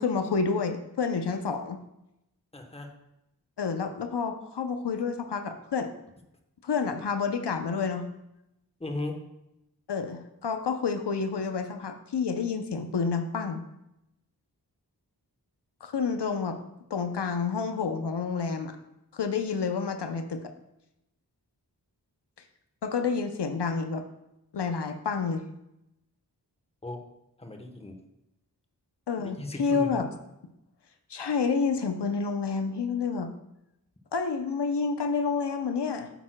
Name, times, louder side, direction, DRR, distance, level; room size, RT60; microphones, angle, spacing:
voice 1, 0.0-1.8 3.6-5.9 6.6-8.1 9.9-13.6 15.8-16.6 16.9-18.8 19.1-20.5 22.8-24.0 24.5-25.4 29.1-30.1 31.1-33.3 34.1-36.1, left 5 dB, 85° left, 7 dB, 0.7 m, -29 dB
voice 2, 2.5-2.9 8.8-9.2 26.8-27.1 27.4-28.0 29.2-30.0, left 2 dB, 15° left, 5 dB, 1.0 m, -36 dB
9.1 x 8.3 x 2.2 m, 0.87 s
wide cardioid pair, 55°, 40 cm